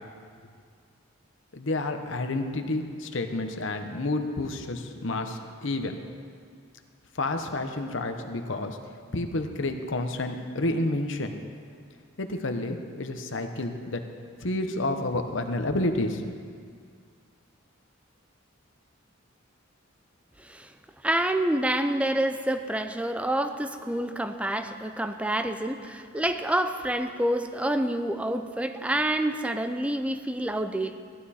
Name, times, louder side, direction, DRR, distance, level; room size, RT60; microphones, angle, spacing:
voice 1, 1.5-6.0 7.1-8.8 9.1-11.3 12.2-14.0 14.4-16.2, left 2 dB, 65° left, 6 dB, 1.0 m, -30 dB
voice 2, 20.4-20.7 21.0-31.0, right 1 dB, 5° right, 8 dB, 0.5 m, -28 dB
15.5 x 12.5 x 4.3 m, 2.1 s
head